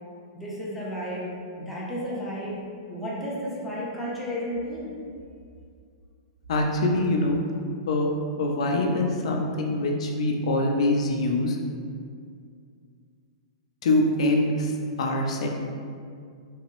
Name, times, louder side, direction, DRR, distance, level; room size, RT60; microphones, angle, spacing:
voice 1, 0.3-1.3 1.6-2.6 2.9-4.9, equal, ahead, -9 dB, 0.5 m, -32 dB
voice 2, 6.5-7.4 7.9-8.1 8.4-11.6 13.8-15.5, left 2 dB, 75° left, 1 dB, 0.4 m, -24 dB
3.4 x 2.0 x 2.9 m, 2.2 s
hypercardioid pair, 160°, 3 cm